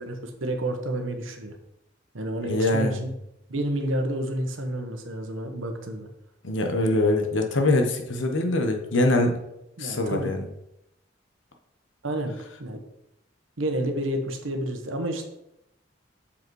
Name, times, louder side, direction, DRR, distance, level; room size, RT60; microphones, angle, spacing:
voice 1, 0.0-1.6 2.1-3.1 3.5-6.1 9.8-10.3 12.0-12.8 13.6-15.2, right 1 dB, 85° right, 5 dB, 1.2 m, -30 dB
voice 2, 2.4-3.0 6.4-9.4 9.8-10.4, left 2 dB, 75° left, 4 dB, 1.0 m, -23 dB
6.9 x 5.2 x 4.7 m, 0.84 s
head